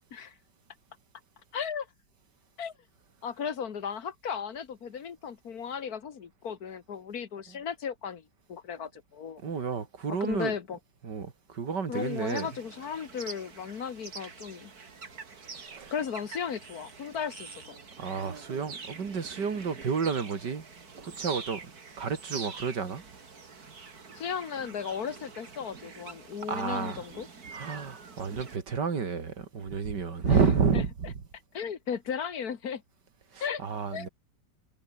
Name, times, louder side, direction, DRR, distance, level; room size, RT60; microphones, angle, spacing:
voice 1, 1.5-1.9 2.6-2.7 3.2-9.4 10.2-10.8 11.9-14.7 15.9-17.8 24.2-27.3 30.3-30.4 30.7-30.8 31.5-32.8 33.4-33.6 33.9-34.1, left 7 dB, 60° left, 1.9 m, -35 dB
voice 2, 9.4-10.5 11.0-12.5 15.7-15.9 18.0-20.6 21.0-21.6 22.0-23.0 26.5-27.0 27.5-31.1 33.3-34.1, right 5 dB, 80° right, 3.0 m, -30 dB
sound 1, 11.9-28.6, right 5 dB, 60° right, 3.0 m, -45 dB
omnidirectional pair, 1.8 m